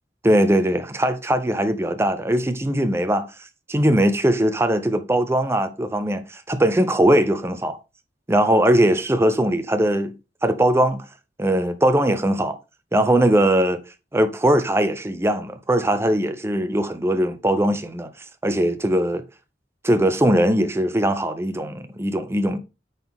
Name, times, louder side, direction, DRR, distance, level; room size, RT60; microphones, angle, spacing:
voice 1, 0.2-3.3 3.7-7.8 8.3-10.2 10.4-11.1 11.4-12.6 12.9-13.8 14.1-18.1 18.4-19.2 19.8-22.6, right 1 dB, 15° right, 0.7 m, -20 dB
9.0 x 4.1 x 3.6 m
head